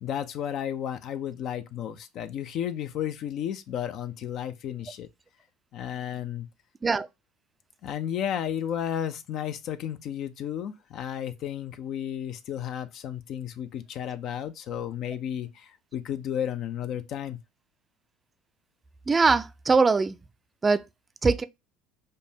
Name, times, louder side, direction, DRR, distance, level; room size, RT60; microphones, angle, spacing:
voice 1, 0.0-5.1 5.7-6.5 7.8-17.4, left 9 dB, 55° left, 0.4 m, -33 dB
voice 2, 19.1-20.2 20.6-20.9 21.2-21.4, right 4 dB, 25° right, 0.4 m, -22 dB
5.1 x 2.1 x 2.7 m
hypercardioid pair, 75°, 0 cm